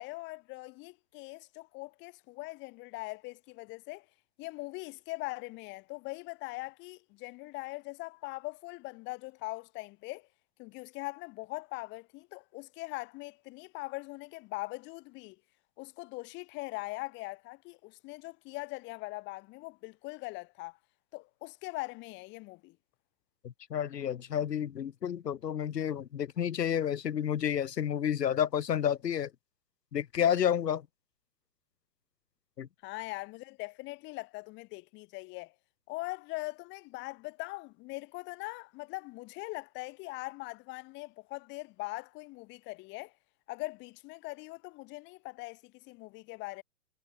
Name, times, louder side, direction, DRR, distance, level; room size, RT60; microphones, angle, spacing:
voice 1, 0.0-4.0 4.4-10.3 10.6-15.4 15.8-20.8 21.1-22.8 32.8-35.5 35.9-43.1 43.5-46.6, left 23 dB, 25° left, 4.5 m, -41 dB
voice 2, 23.4-29.3 29.9-30.8 32.6-32.7, left 9 dB, 80° left, 3.9 m, -30 dB
hypercardioid pair, 170°, 48 cm